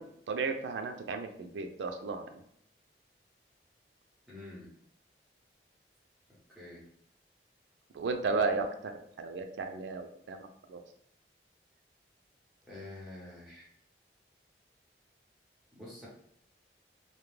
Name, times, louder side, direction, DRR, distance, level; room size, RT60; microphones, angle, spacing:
voice 1, 0.0-2.3 7.9-8.9 9.2-10.8, right 4 dB, 85° right, 6 dB, 0.4 m, -34 dB
voice 2, 4.3-4.7 6.5-6.8 8.3-8.4 12.7-13.7 15.7-16.1, left 2 dB, ahead, -8 dB, 0.8 m, -47 dB
2.2 x 2.1 x 3.1 m, 0.70 s
head